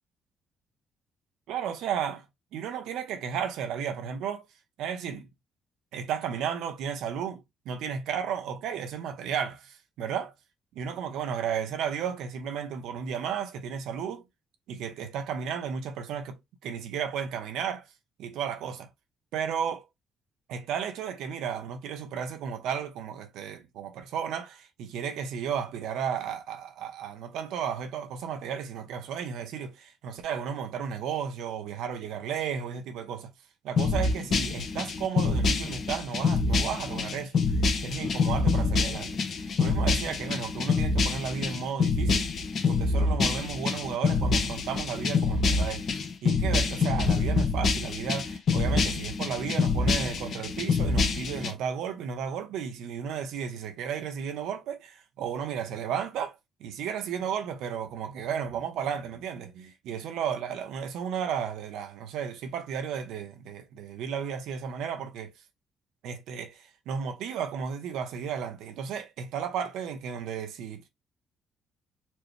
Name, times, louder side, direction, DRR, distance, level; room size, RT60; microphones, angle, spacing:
voice 1, 1.5-2.3 2.5-4.5 4.8-5.3 5.9-10.3 10.7-14.2 14.7-17.9 18.2-18.9 19.3-19.8 20.5-33.3 33.6-42.3 42.6-45.9 46.2-65.3 66.0-70.9, right 7 dB, 90° right, 0.8 m, -34 dB
sound 1, 33.8-51.5, left 4 dB, 60° left, 1.1 m, -26 dB
4.4 x 2.1 x 3.2 m
cardioid pair, 90°, 0 cm